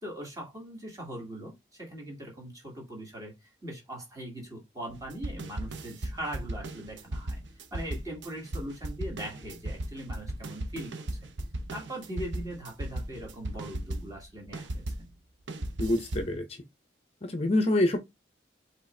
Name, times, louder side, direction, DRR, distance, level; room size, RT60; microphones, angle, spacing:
voice 1, 0.0-3.3 3.6-7.4 7.7-11.0 11.7-14.8, right 1 dB, 20° right, 2.1 m, -40 dB
sound 1, 4.9-15.1 15.5-16.3, right 1 dB, 80° right, 0.7 m, -36 dB
voice 2, 15.8-16.6 17.2-18.0, left 1 dB, 35° left, 0.6 m, -26 dB
5.0 x 3.3 x 3.2 m
head